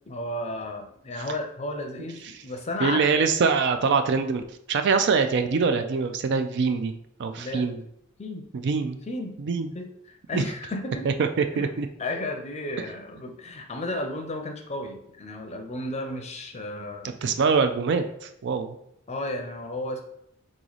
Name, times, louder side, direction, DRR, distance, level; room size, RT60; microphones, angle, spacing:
voice 1, 0.1-3.2 7.4-7.7 8.2-8.5 9.1-9.4 9.7-11.1 11.5-11.7 12.0-17.1 19.1-20.0, left 1 dB, 30° left, 4 dB, 0.6 m, -33 dB
voice 2, 2.8-6.9 7.2-7.8 8.5-9.0 9.4-9.7 10.3-10.4 11.0-11.9 17.2-18.8, right 5 dB, 55° right, 8 dB, 0.4 m, -24 dB
3.8 x 3.1 x 3.9 m, 0.74 s
head